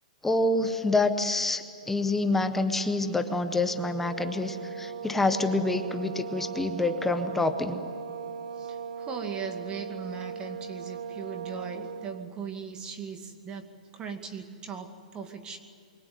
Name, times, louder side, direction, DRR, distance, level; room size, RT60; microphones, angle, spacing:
voice 1, 0.2-7.8, left 2 dB, 5° left, 8 dB, 1.3 m, -27 dB
sound 1, 3.6-12.3, right 7 dB, 60° right, 1.1 m, -38 dB
voice 2, 8.6-15.6, right 6 dB, 20° right, 5 dB, 2.3 m, -39 dB
27.0 x 23.5 x 9.4 m, 2.3 s
hypercardioid pair, 145°, 4 cm